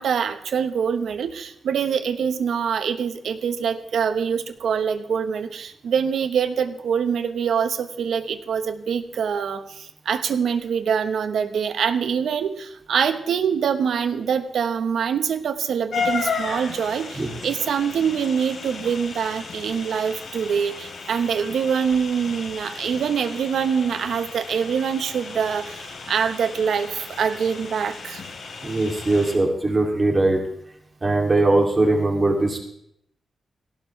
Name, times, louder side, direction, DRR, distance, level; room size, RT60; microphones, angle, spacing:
voice 1, 0.0-28.2, right 7 dB, 90° right, 9 dB, 1.2 m, -24 dB
sound 1, 15.9-29.4, left 5 dB, 70° left, 3.3 m, -34 dB
voice 2, 28.6-30.4 31.0-32.6, right 2 dB, 25° right, 0 dB, 2.9 m, -20 dB
17.5 x 17.5 x 3.4 m, 0.72 s
wide cardioid pair, 170°, 0 cm